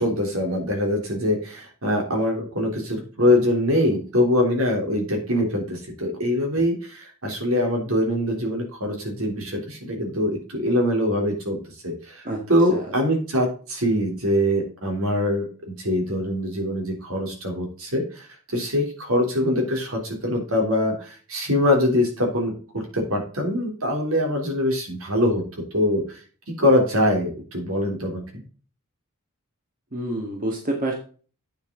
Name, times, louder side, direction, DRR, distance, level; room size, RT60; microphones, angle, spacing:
voice 1, 0.0-11.6 11.8-18.3 18.5-25.4 25.7-26.2 26.6-28.4, left 1 dB, 65° right, 1 dB, 3.4 m, -23 dB
voice 2, 29.9-30.9, right 1 dB, 40° right, 0 dB, 2.0 m, -27 dB
9.2 x 7.1 x 3.9 m, 0.39 s
head